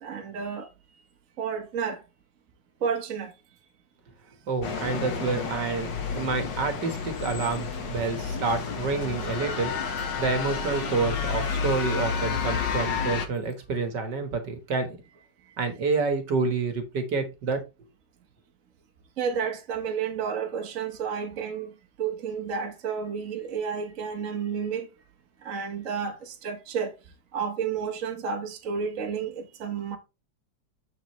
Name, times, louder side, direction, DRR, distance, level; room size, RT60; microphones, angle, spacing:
voice 1, 0.0-0.7 1.4-2.0 2.8-3.3 7.9-8.1 10.0-10.1 19.2-24.9 25.4-26.9 27.3-30.0, right 6 dB, 45° right, 1.4 m, -31 dB
voice 2, 4.5-15.0 15.6-17.6, right 4 dB, 65° right, 2.0 m, -28 dB
sound 1, 4.6-13.3, left 5 dB, 70° left, 2.0 m, -30 dB
7.3 x 6.7 x 3.1 m
omnidirectional pair, 2.1 m